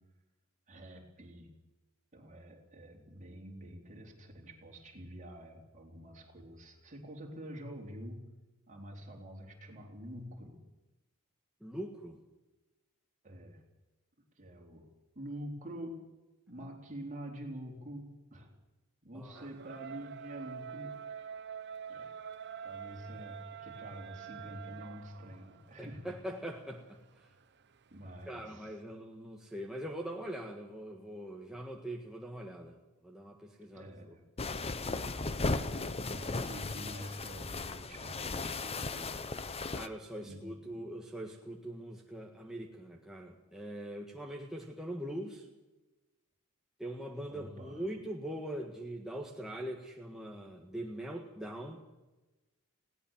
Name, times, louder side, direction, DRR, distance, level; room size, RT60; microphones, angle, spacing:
voice 1, 0.7-1.5 2.1-8.3 8.7-10.6 13.2-13.6 14.4-14.9 15.2-16.1 16.5-18.5 19.0-21.3 21.9-22.1 22.6-26.1 27.9-28.8 33.7-34.2 36.0-39.3 40.2-40.8 47.3-47.8, equal, 35° right, 1 dB, 3.9 m, -47 dB
voice 2, 11.6-12.2 19.1-19.5 25.8-27.3 28.3-32.8 33.0-34.2 39.7-45.5 46.8-51.8, right 1 dB, ahead, 0 dB, 1.6 m, -42 dB
sound 1, 19.3-28.5, right 8 dB, 50° right, 0.9 m, -47 dB
sound 2, 34.4-39.9, left 3 dB, 25° left, 0.8 m, -36 dB
20.0 x 17.5 x 7.4 m, 1.1 s
head